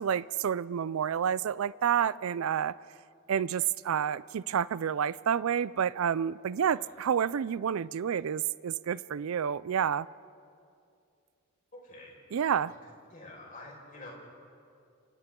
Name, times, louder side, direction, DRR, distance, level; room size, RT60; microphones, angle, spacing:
voice 1, 0.0-2.7 3.3-10.1 12.3-12.7, right 8 dB, 85° right, 0.4 m, -29 dB
voice 2, 11.7-12.8 13.1-14.1, left 2 dB, 40° left, 5.3 m, -49 dB
29.5 x 26.0 x 3.8 m
head